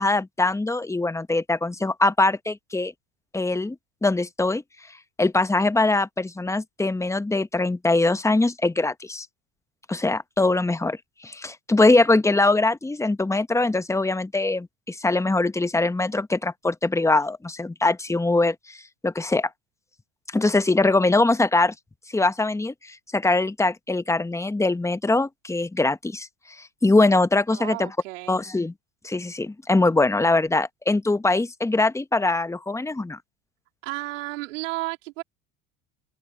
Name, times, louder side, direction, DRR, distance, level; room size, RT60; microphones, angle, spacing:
voice 1, 0.0-2.9 3.3-3.8 4.0-4.6 5.2-9.3 9.9-19.5 20.3-21.7 22.1-26.3 26.6-27.9 28.3-28.7 29.0-33.2, left 2 dB, 10° left, 1.0 m, -22 dB
voice 2, 27.5-28.4 33.8-35.2, right 20 dB, 85° right, 3.1 m, -33 dB
supercardioid pair, 90°, 37 cm